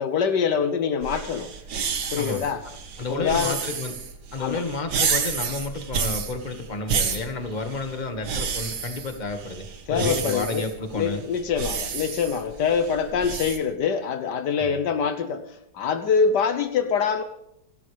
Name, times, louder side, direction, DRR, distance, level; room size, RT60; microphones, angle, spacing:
voice 1, 0.0-1.5 2.1-2.6 3.1-3.6 4.4-4.6 9.9-10.6 10.9-15.4 15.7-17.2, left 6 dB, 70° left, 9 dB, 1.5 m, -24 dB
sound 1, 1.0-13.6, right 6 dB, 70° right, 1.9 m, -30 dB
voice 2, 3.0-4.0 4.3-11.3 14.6-14.8, left 3 dB, 25° left, 5 dB, 1.7 m, -31 dB
28.5 x 13.0 x 3.4 m, 0.79 s
omnidirectional pair, 1.9 m